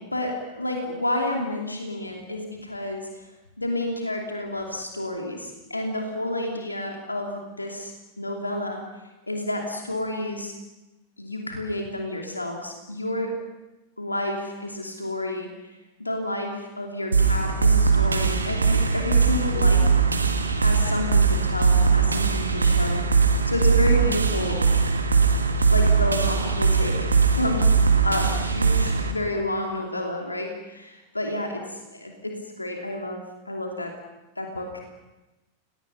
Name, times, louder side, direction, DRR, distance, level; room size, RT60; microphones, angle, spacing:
voice 1, 0.0-3.2 3.6-8.8 9.3-10.5 11.2-13.3 14.0-15.7 16.0-19.9 20.5-24.6 25.6-27.7 28.0-33.9 34.4-34.9, left 1 dB, 85° left, 2 dB, 2.9 m, -30 dB
sound 1, 17.1-29.1, right 5 dB, 75° right, 2.1 m, -20 dB
30.0 x 21.5 x 5.8 m, 1.0 s
figure-of-eight pair, 90°, 0 cm